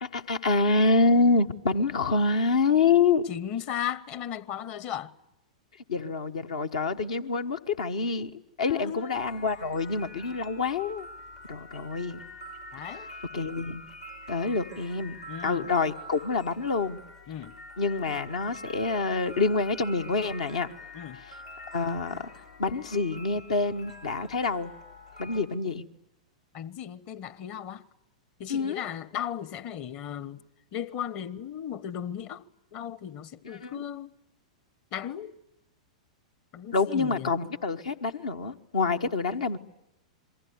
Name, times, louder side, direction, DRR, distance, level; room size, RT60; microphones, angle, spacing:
voice 1, 0.0-3.3 5.9-11.1 11.5-12.2 13.3-13.8 14.3-15.2 15.4-17.0 17.8-20.7 21.7-22.3 22.6-24.7 25.2-25.8 28.5-28.8 33.4-33.8 36.7-39.6, left 4 dB, 65° left, 1.2 m, -26 dB
voice 2, 3.3-5.1 8.7-9.2 12.7-13.1 15.3-15.7 17.3-17.5 20.9-21.2 26.5-27.8 28.4-30.4 30.7-32.4 32.7-34.1 34.9-35.3 36.5-37.3, left 9 dB, 35° left, 1.2 m, -36 dB
sound 1, 9.1-25.4, left 1 dB, 80° left, 4.8 m, -46 dB
27.5 x 23.0 x 9.4 m
figure-of-eight pair, 100°, 4 cm